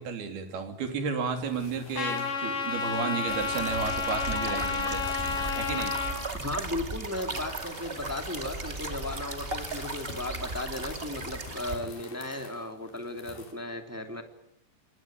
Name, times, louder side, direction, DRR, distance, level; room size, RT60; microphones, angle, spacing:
voice 1, 0.0-5.0 5.6-6.0, right 5 dB, 60° right, 7 dB, 4.8 m, -32 dB
sound 1, 0.8-13.5, left 4 dB, 55° left, 6.2 m, -48 dB
Trumpet, 2.0-6.2, left 6 dB, 90° left, 6.3 m, -31 dB
sound 2, 3.3-11.8, right 3 dB, 20° right, 1.4 m, -36 dB
voice 2, 6.3-14.2, left 1 dB, 5° right, 6 dB, 1.5 m, -36 dB
27.0 x 22.0 x 9.1 m, 0.73 s
omnidirectional pair, 5.1 m